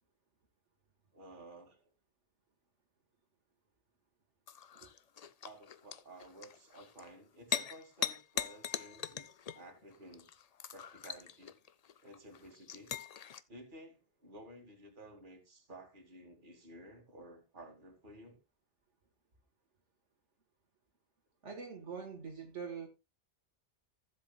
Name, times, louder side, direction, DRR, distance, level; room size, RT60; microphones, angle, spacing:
voice 1, 1.1-1.8 5.4-9.3 9.5-10.3 10.7-11.5 12.0-12.9 13.5-18.4, right 1 dB, 45° right, 2.2 m, -54 dB
sound 1, 4.5-13.4, left 8 dB, 50° left, 0.5 m, -41 dB
voice 2, 21.4-22.9, right 6 dB, 80° right, 1.9 m, -44 dB
16.0 x 7.5 x 2.3 m
omnidirectional pair, 1.2 m